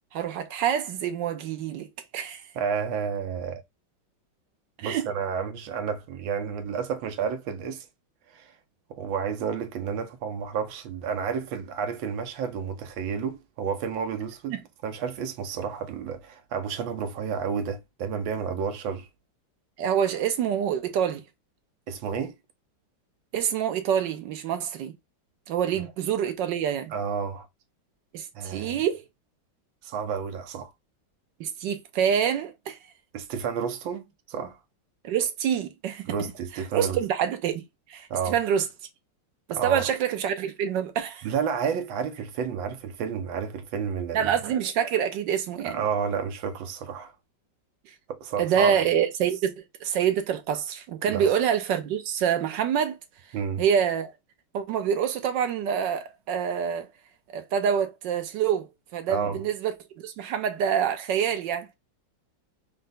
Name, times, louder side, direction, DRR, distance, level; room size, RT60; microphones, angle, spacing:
voice 1, 0.1-2.4 4.8-5.1 14.5-14.6 19.8-21.2 23.3-24.9 25.5-26.9 28.1-29.0 31.4-32.8 35.0-36.1 36.7-37.6 37.9-38.7 39.5-41.3 44.1-45.8 48.4-49.5 49.8-53.0 53.6-54.1 54.5-56.9 57.3-58.7 58.9-61.7, right 8 dB, 75° right, 1.3 m, -26 dB
voice 2, 2.5-3.6 4.8-7.9 8.3-8.5 8.9-19.1 21.9-22.3 26.9-27.5 28.3-28.8 29.8-30.7 33.1-34.6 36.0-37.0 38.1-38.4 39.5-39.9 41.2-44.3 45.6-47.1 48.1-48.8 51.1-51.3 53.3-53.6 59.1-59.4, right 6 dB, 90° right, 1.5 m, -31 dB
4.3 x 2.2 x 3.8 m
omnidirectional pair, 2.1 m